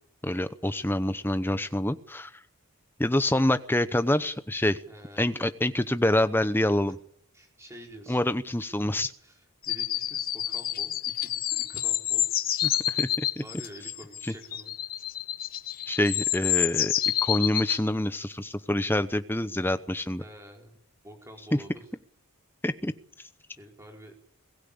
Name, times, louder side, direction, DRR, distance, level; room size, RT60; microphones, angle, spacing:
voice 1, 0.2-2.3 3.0-4.8 5.2-7.0 8.1-9.1 12.6-13.4 15.9-20.2 22.6-22.9, left 1 dB, 10° left, 12 dB, 0.8 m, -26 dB
voice 2, 4.9-5.5 7.3-8.2 8.8-12.3 13.4-14.7 20.2-20.7 21.0-21.8 23.6-24.1, right 1 dB, 15° right, 2 dB, 4.4 m, -48 dB
sound 1, 9.6-17.8, left 12 dB, 40° left, 0.9 m, -28 dB
22.0 x 16.0 x 8.7 m, 0.70 s
head